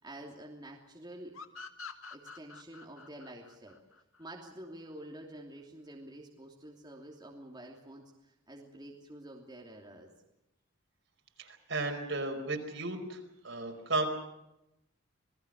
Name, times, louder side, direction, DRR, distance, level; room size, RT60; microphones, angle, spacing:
voice 1, 0.0-1.3 2.1-3.8 4.2-8.0 8.5-10.1, right 1 dB, 20° right, -1 dB, 3.0 m, -48 dB
sound 1, 1.3-4.7, left 4 dB, 75° left, 1.9 m, -48 dB
voice 2, 11.4-13.2 13.4-14.1, right 2 dB, 60° right, 3 dB, 4.9 m, -34 dB
27.5 x 20.0 x 6.5 m, 0.88 s
head